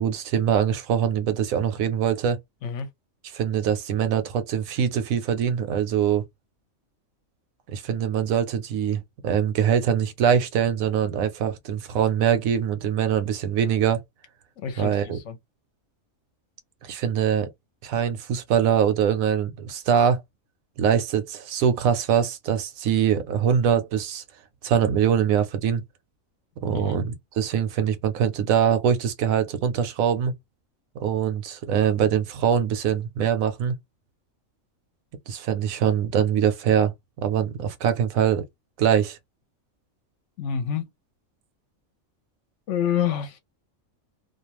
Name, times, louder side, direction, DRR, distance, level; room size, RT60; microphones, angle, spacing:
voice 1, 0.0-2.4 3.3-6.2 7.7-14.0 14.8-15.2 16.8-17.5 17.8-20.2 20.8-24.2 24.6-25.8 26.6-30.3 31.0-33.8 35.3-36.9 37.2-38.5 38.8-39.2, right 8 dB, 80° right, 1.0 m, -23 dB
voice 2, 14.6-15.4 26.7-27.0 40.4-40.9 42.7-43.4, left 8 dB, 70° left, 0.9 m, -28 dB
2.4 x 2.2 x 2.9 m
omnidirectional pair, 1.4 m